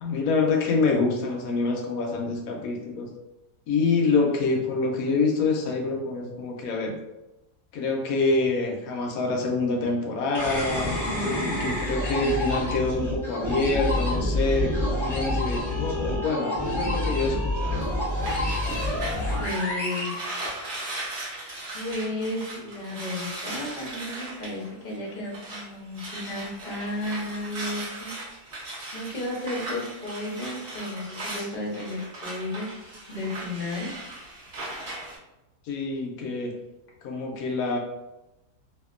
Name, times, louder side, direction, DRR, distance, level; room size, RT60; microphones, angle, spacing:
voice 1, 0.0-3.1 3.7-6.9 7.7-11.0 11.4-17.8 35.7-36.5 37.0-37.8, left 3 dB, 70° left, 1 dB, 0.9 m, -26 dB
sound 1, 10.3-21.0, left 1 dB, 5° left, 0.3 m, -28 dB
sound 2, 17.7-25.7 25.9-35.2, right 2 dB, 45° right, 0.8 m, -38 dB
voice 2, 19.4-20.4 21.7-28.1 28.5-32.7 33.1-33.9, left 1 dB, 45° left, -4 dB, 0.6 m, -33 dB
2.7 x 2.5 x 2.4 m, 0.97 s
omnidirectional pair, 1.8 m